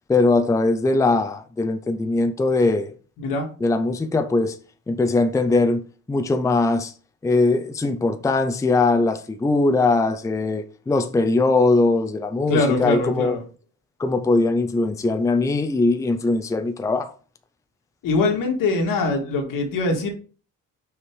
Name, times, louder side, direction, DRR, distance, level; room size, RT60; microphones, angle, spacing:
voice 1, 0.1-2.9 3.6-4.6 4.9-5.8 6.1-6.9 7.2-13.3 14.0-17.1, left 3 dB, 10° left, 0.5 m, -20 dB
voice 2, 3.2-3.5 12.5-13.4 18.0-20.1, left 3 dB, 80° left, 2.2 m, -22 dB
6.0 x 4.9 x 4.7 m
cardioid pair, 150°, 32 cm